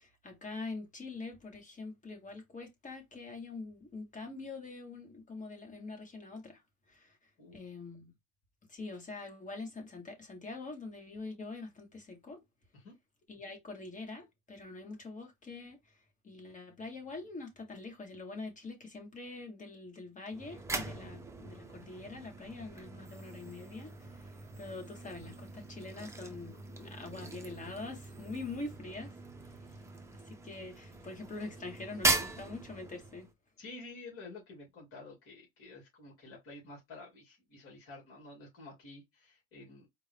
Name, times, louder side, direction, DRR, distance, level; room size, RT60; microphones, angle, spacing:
voice 1, 0.0-6.6 6.9-7.2 7.5-8.1 8.7-12.4 13.3-15.8 16.2-29.1 30.1-33.3, left 3 dB, 25° left, 1.6 m, -44 dB
sound 1, 20.3-33.3, right 3 dB, 10° right, 0.7 m, -39 dB
voice 2, 33.6-39.9, left 3 dB, 45° left, 2.7 m, -50 dB
4.5 x 2.7 x 3.5 m
cardioid pair, 130°, 31 cm